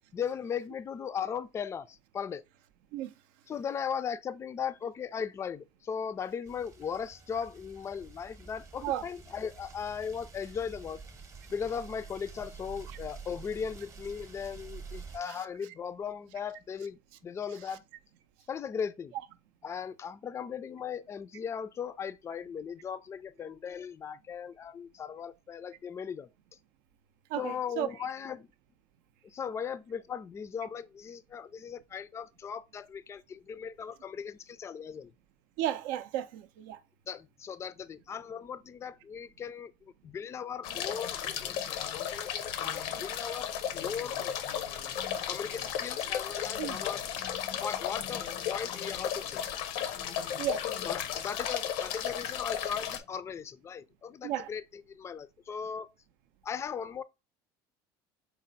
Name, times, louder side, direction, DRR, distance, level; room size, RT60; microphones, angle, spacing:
voice 1, 0.1-2.4 3.5-11.0 11.5-17.8 18.5-19.1 19.6-26.3 27.4-28.5 29.2-35.1 37.1-44.3 44.6-45.0 45.3-47.0 47.6-49.5 50.8-54.6 54.9-55.9 56.4-57.0, left 7 dB, 25° left, 0.3 m, -38 dB
sound 1, 6.5-15.2, right 5 dB, 30° right, 0.8 m, -48 dB
voice 2, 27.3-27.9 35.6-36.8 46.6-46.8 50.4-50.7 54.2-54.5, right 12 dB, 80° right, 0.5 m, -33 dB
sound 2, 40.6-53.0, left 9 dB, 75° left, 0.6 m, -34 dB
4.1 x 2.0 x 3.9 m
supercardioid pair, 100°, 11 cm